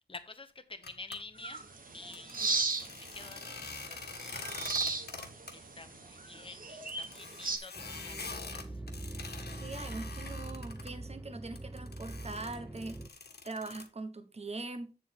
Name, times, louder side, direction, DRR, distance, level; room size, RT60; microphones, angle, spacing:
voice 1, 0.0-1.6 1.9-5.0 5.5-8.8, left 3 dB, 30° left, 1.1 m, -50 dB
sound 1, 0.8-1.2 2.1-5.5 5.8-5.9 6.2-6.3 6.9-10.9 11.6-13.9, left 4 dB, 70° left, 1.6 m, -45 dB
sound 2, 1.4-7.6, right 3 dB, 55° right, 1.4 m, -37 dB
sound 3, 7.7-13.1, right 2 dB, 10° right, 0.5 m, -43 dB
voice 2, 9.6-13.0 13.4-14.9, right 3 dB, 35° right, 1.2 m, -42 dB
8.2 x 7.5 x 3.6 m
wide cardioid pair, 110°, 17 cm